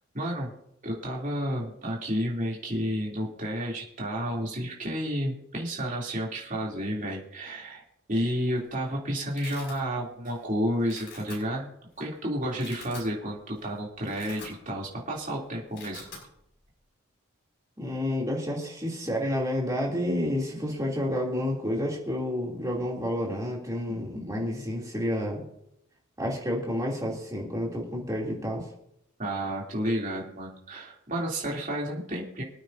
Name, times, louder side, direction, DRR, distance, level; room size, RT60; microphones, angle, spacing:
voice 1, 0.1-0.5 0.8-7.8 8.1-11.7 12.0-16.1 29.2-32.4, equal, 35° right, -3 dB, 3.1 m, -31 dB
Domestic sounds home sounds, 8.3-8.7 8.9-9.8 10.2-10.5 10.8-11.4 12.0-12.1 12.4-13.1 13.5-13.6 14.0-14.9 15.1-15.3 15.6-16.2, left 4 dB, 60° left, 6.0 m, -45 dB
voice 2, 17.8-25.4 26.2-28.7, left 1 dB, 15° right, -2 dB, 3.0 m, -30 dB
26.0 x 8.9 x 2.8 m, 0.76 s
head